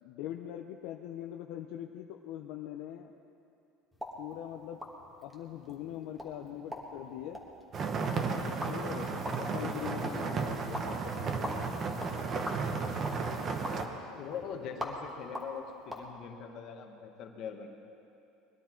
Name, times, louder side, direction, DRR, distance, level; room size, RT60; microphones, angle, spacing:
voice 1, 0.0-3.1 4.2-4.8 5.2-7.4 8.7-9.1 9.4-11.7, left 11 dB, 60° left, 3 dB, 0.6 m, -42 dB
sound 1, 3.9-16.1, left 1 dB, ahead, 1.4 m, -44 dB
sound 2, 7.7-13.9, right 4 dB, 25° right, 0.9 m, -34 dB
voice 2, 14.0-17.7, left 7 dB, 45° left, 4 dB, 1.3 m, -42 dB
21.0 x 12.0 x 4.5 m, 2.7 s
cardioid pair, 165°, 0 cm